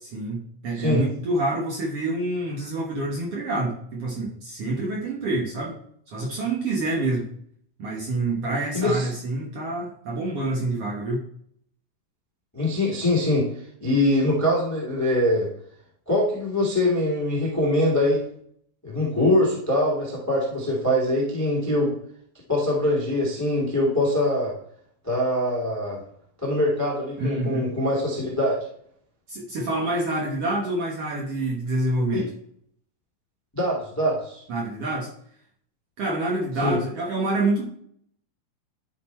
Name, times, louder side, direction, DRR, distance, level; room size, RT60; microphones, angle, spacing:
voice 1, 0.0-5.8 6.1-7.3 7.8-11.2 27.2-27.7 29.3-32.3 34.5-35.1 36.0-37.6, right 2 dB, 60° right, -3 dB, 1.8 m, -27 dB
voice 2, 8.7-9.1 12.5-13.4 13.8-15.5 16.1-18.2 18.8-21.9 22.5-24.5 25.0-26.0 26.4-28.6 32.1-32.2 33.5-34.4 36.6-36.8, left 1 dB, 10° left, -4 dB, 1.0 m, -23 dB
11.5 x 4.2 x 4.4 m, 0.66 s
omnidirectional pair, 3.9 m